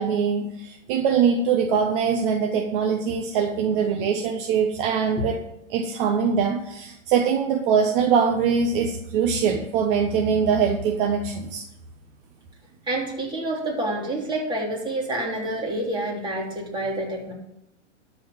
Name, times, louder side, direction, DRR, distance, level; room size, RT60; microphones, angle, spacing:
voice 1, 0.0-5.4 5.7-11.6, right 6 dB, 45° right, 3 dB, 1.3 m, -23 dB
voice 2, 12.9-17.3, right 1 dB, 10° right, -3 dB, 3.4 m, -28 dB
13.0 x 4.9 x 8.0 m, 0.85 s
hypercardioid pair, 130°, 37 cm